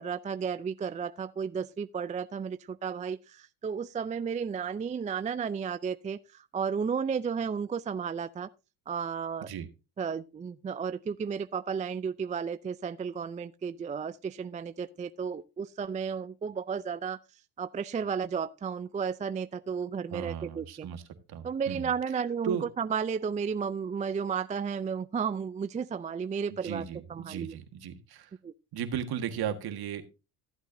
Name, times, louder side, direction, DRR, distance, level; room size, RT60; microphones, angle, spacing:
voice 1, 0.0-8.5 8.9-9.5 10.0-17.2 17.6-20.9 21.4-26.8 27.1-27.5 28.4-28.5, right 6 dB, 20° right, 0.4 m, -33 dB
voice 2, 20.1-21.0 21.3-21.9 22.4-22.7 26.5-28.3 28.7-30.0, right 8 dB, 55° right, 1.6 m, -36 dB
14.0 x 8.2 x 2.6 m
supercardioid pair, 75°, 44 cm